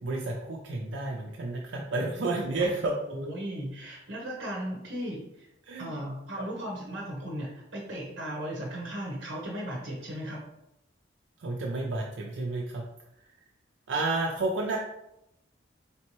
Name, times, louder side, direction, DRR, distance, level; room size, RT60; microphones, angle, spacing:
voice 1, 0.0-3.0 5.6-6.0 6.3-6.4 11.4-12.8 13.9-14.8, right 2 dB, 75° right, -1 dB, 0.5 m, -31 dB
voice 2, 3.1-5.5 5.8-10.4, equal, 55° right, -2 dB, 0.9 m, -36 dB
4.2 x 3.3 x 3.0 m, 0.86 s
head